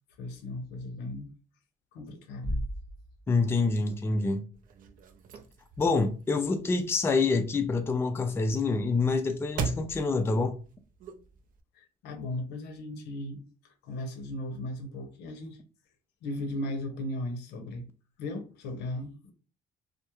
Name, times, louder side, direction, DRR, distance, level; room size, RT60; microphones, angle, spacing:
voice 1, 0.2-1.3 1.9-2.7 11.7-15.6 16.2-17.9 18.2-19.3, left 1 dB, 85° left, 0.6 m, -37 dB
Bass drum, 2.4-4.1, equal, 20° right, 0.7 m, -36 dB
voice 2, 3.3-4.4 5.8-10.6, left 3 dB, 15° left, 0.3 m, -26 dB
sound 1, 4.5-11.6, right 4 dB, 55° right, 0.4 m, -41 dB
2.2 x 2.0 x 2.9 m
cardioid pair, 110°, 17 cm